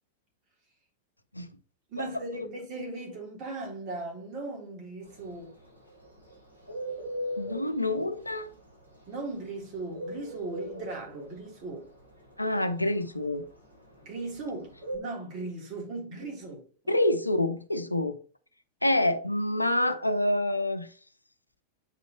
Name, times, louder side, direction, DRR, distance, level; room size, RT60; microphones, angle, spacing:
voice 1, 1.9-5.5 9.1-11.9 14.0-16.9, right 2 dB, 40° right, 3.7 m, -38 dB
Bird, 5.0-15.0, equal, 85° right, 3.3 m, -38 dB
voice 2, 7.4-8.5 12.4-13.4 16.9-18.2 18.8-20.9, left 1 dB, 85° left, 0.6 m, -27 dB
8.1 x 5.2 x 3.1 m
figure-of-eight pair, 90°, 0 cm